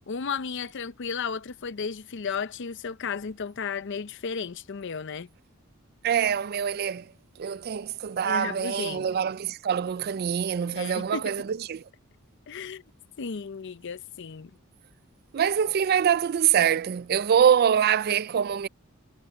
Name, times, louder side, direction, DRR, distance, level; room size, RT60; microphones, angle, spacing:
voice 1, 0.1-5.3 8.2-9.1 10.7-11.3 12.5-12.8 13.2-14.5, left 6 dB, 55° left, 0.6 m, -34 dB
voice 2, 6.0-7.1 7.4-11.8 15.3-18.7, right 8 dB, 45° right, 0.4 m, -24 dB
head